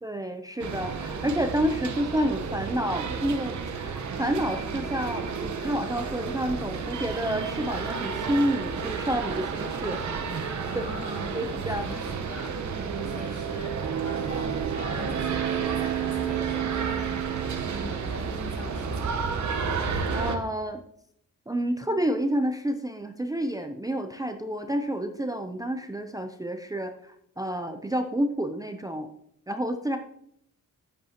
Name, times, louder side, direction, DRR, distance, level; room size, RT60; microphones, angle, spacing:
voice 1, 0.0-10.0 10.3-10.8 11.3-11.9 12.8-13.1 20.1-20.8 21.5-29.1 29.5-30.0, right 1 dB, 10° right, 6 dB, 0.5 m, -29 dB
sound 1, 0.6-20.4, right 6 dB, 65° right, 1.1 m, -31 dB
voice 2, 10.6-12.5 13.1-17.1 17.4-19.3, left 1 dB, 65° left, -4 dB, 3.9 m, -42 dB
10.5 x 8.8 x 2.9 m, 0.70 s
wide cardioid pair, 155°, 32 cm